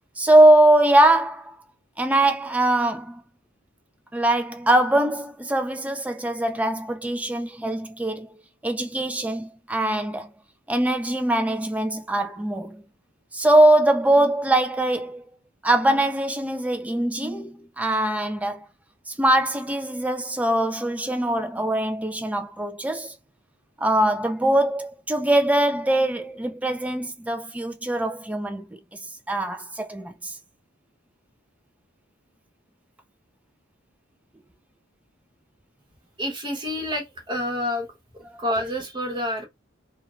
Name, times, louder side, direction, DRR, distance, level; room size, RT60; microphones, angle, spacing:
voice 1, 0.2-1.6 2.0-3.2 4.1-8.3 8.6-10.3 10.7-12.8 13.3-15.2 15.6-18.7 19.1-23.2 23.8-28.8 29.3-30.4 38.3-38.4, right 1 dB, 5° right, 0.3 m, -22 dB
voice 2, 36.2-37.9 38.4-39.5, left 1 dB, 25° right, 0.9 m, -28 dB
2.4 x 2.2 x 3.0 m
head